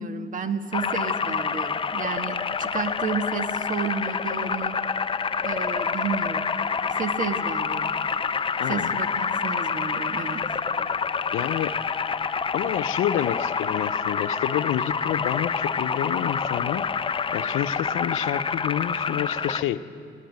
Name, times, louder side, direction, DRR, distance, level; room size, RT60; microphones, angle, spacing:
voice 1, 0.0-4.8 5.4-6.5 7.0-7.9 8.7-10.5, right 5 dB, 40° right, 7 dB, 1.7 m, -31 dB
sound 1, 0.7-19.6, left 5 dB, 25° left, 0.6 m, -27 dB
voice 2, 8.6-8.9 11.3-11.8 12.5-16.9 17.3-19.8, left 12 dB, 90° left, 11 dB, 0.8 m, -28 dB
22.5 x 17.0 x 9.5 m, 2.4 s
cardioid pair, 90°, 20 cm